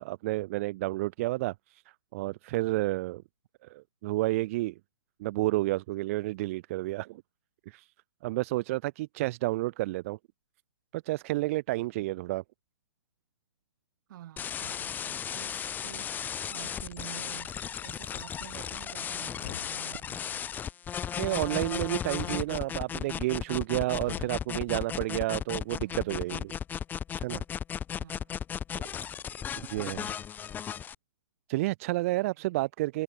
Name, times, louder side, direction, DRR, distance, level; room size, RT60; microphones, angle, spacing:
voice 1, 0.0-1.8 2.1-3.2 3.6-4.8 5.2-7.2 7.7-7.9 8.2-10.2 10.9-12.4 21.2-26.5 27.2-27.4 29.7-30.1 31.5-33.0, right 19 dB, 35° right, 0.4 m, -30 dB
voice 2, 14.1-17.5 17.8-20.5 25.8-26.5 28.0-28.4 32.2-32.5, right 13 dB, 50° right, 7.8 m, -49 dB
sound 1, 14.4-30.9, left 8 dB, 15° left, 0.8 m, -35 dB
sound 2, 19.4-20.0 22.2-22.7 24.0-24.5, left 10 dB, 55° left, 1.8 m, -43 dB
hypercardioid pair, 130°, 13 cm